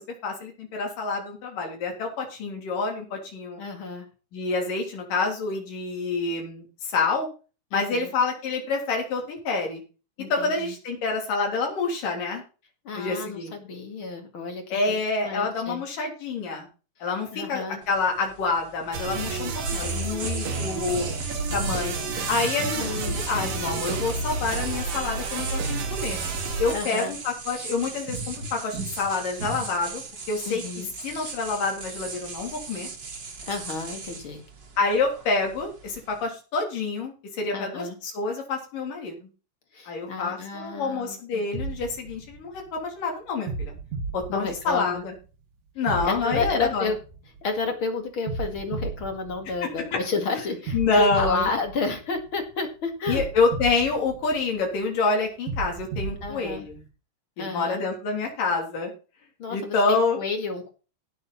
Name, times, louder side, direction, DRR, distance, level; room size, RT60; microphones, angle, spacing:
voice 1, 0.0-3.6 4.3-7.3 7.7-9.8 10.3-12.4 12.9-13.5 14.7-16.7 17.0-21.1 21.5-21.9 22.3-26.2 26.6-30.0 30.3-30.6 31.0-32.9 34.8-39.3 39.9-43.7 44.1-45.1 45.8-46.9 49.6-50.0 50.7-51.5 53.1-56.8 57.4-58.9 59.5-60.2, left 4 dB, 80° left, 1 dB, 5.1 m, -27 dB
voice 2, 3.6-4.1 7.7-8.1 10.2-10.7 12.8-14.8 15.2-15.8 17.3-17.8 22.8-23.2 26.7-27.1 30.5-30.9 33.5-34.4 37.5-38.0 39.7-41.4 44.3-45.0 46.0-47.0 47.4-53.2 56.2-56.7 57.4-57.8 59.4-60.7, left 4 dB, 45° left, 5 dB, 2.3 m, -31 dB
sound 1, 17.8-36.3, right 3 dB, 35° right, 2.4 m, -37 dB
sound 2, 18.9-26.7, right 4 dB, 80° right, 3.8 m, -30 dB
sound 3, 41.5-42.9 43.5-45.2 45.9-47.7 48.3-50.1 50.7-52.5 53.1-54.8 55.5-56.9, right 4 dB, 65° right, 2.9 m, -35 dB
17.0 x 6.6 x 4.2 m, 0.34 s
omnidirectional pair, 3.8 m